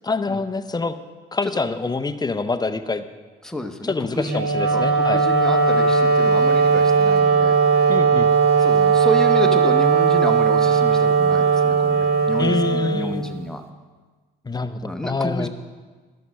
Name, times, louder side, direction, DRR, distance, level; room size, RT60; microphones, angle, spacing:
voice 1, 0.0-1.0 1.3-3.0 3.8-5.2 7.9-8.3 12.4-13.3 14.5-15.5, left 3 dB, 20° left, 10 dB, 0.6 m, -25 dB
voice 2, 3.4-4.4 4.7-7.6 8.6-13.6 14.8-15.5, left 2 dB, 5° left, 4 dB, 1.0 m, -30 dB
Wind instrument woodwind instrument, 4.2-13.5, right 5 dB, 50° right, 1.1 m, -18 dB
12.5 x 5.8 x 6.4 m, 1.4 s
cardioid pair, 90°, 20 cm